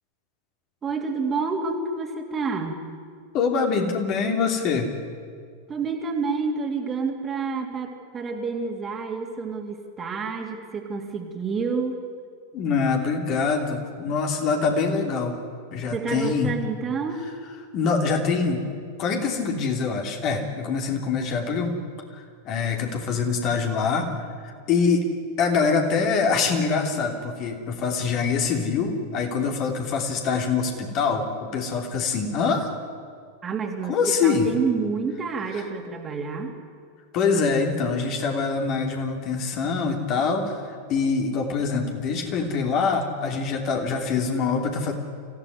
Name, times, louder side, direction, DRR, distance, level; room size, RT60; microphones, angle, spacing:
voice 1, 0.8-2.8 5.7-12.0 15.9-17.3 33.4-36.5, right 4 dB, 20° right, 3 dB, 2.8 m, -29 dB
voice 2, 3.3-4.9 12.5-15.4 15.7-16.5 17.7-18.6 19.0-21.7 22.1-25.0 25.4-32.7 33.8-34.5 35.5-35.6 37.1-40.6 40.9-44.9, left 5 dB, 40° left, 3 dB, 3.1 m, -24 dB
26.0 x 15.5 x 9.7 m, 2.1 s
figure-of-eight pair, 90°, 0 cm